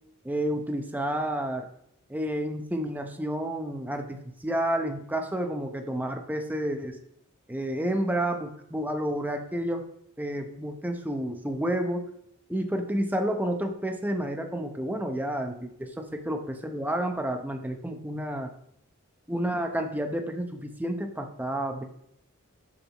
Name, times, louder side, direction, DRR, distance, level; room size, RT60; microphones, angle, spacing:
voice 1, 0.2-1.7 2.1-7.0 7.5-9.9 10.2-12.1 12.5-18.5 19.3-21.8, right 1 dB, 10° right, 4 dB, 0.8 m, -30 dB
13.0 x 7.0 x 3.0 m, 0.72 s
head